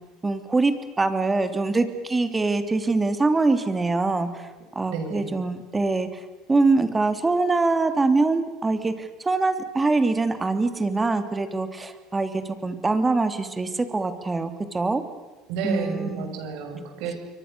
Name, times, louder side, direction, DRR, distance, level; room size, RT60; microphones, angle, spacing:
voice 1, 0.2-4.5 4.7-6.1 6.5-15.0 15.6-16.3, right 3 dB, 15° right, 9 dB, 2.9 m, -24 dB
voice 2, 4.9-5.3 15.5-17.2, right 5 dB, 75° right, 5 dB, 6.9 m, -31 dB
28.5 x 23.5 x 6.8 m, 1.2 s
supercardioid pair, 100°, 0 cm